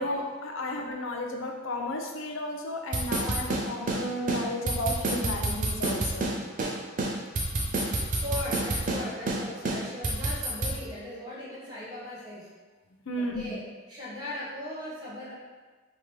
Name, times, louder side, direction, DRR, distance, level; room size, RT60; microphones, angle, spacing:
voice 1, 0.0-6.3 13.1-13.6, left 1 dB, 80° left, 2 dB, 0.6 m, -33 dB
sound 1, 2.9-4.0 4.3-4.4 4.7-6.3 6.6-6.7 7.0-9.0 9.3-9.4 9.7-10.8, right 2 dB, 40° right, 0.7 m, -28 dB
voice 2, 6.2-6.9 7.9-12.5 13.2-15.3, left 1 dB, 20° right, -8 dB, 1.3 m, -39 dB
3.7 x 3.0 x 4.6 m, 1.3 s
head